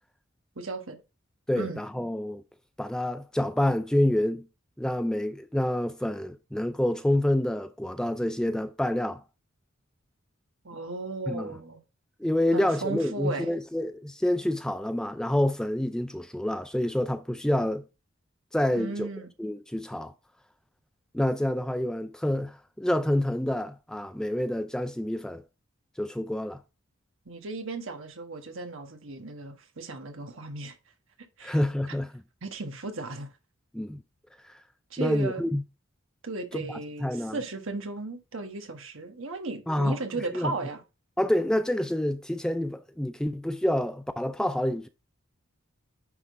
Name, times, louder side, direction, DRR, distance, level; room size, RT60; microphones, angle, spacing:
voice 1, 0.5-1.0 1.5-1.8 10.6-11.8 12.5-13.5 18.8-19.3 27.2-30.8 31.4-31.6 32.4-33.3 34.9-35.4 36.2-40.8, right 3 dB, 70° right, 1.3 m, -35 dB
voice 2, 1.5-2.4 2.8-4.5 4.8-9.2 11.3-11.5 12.2-17.8 18.5-19.1 19.4-20.1 21.1-25.4 26.0-26.6 31.4-32.1 33.7-34.0 34.4-34.6 35.0-35.6 36.5-36.6 37.0-37.4 39.7-40.0 40.3-40.5 41.2-44.9, left 1 dB, 5° left, 0.3 m, -27 dB
9.8 x 3.6 x 3.7 m
head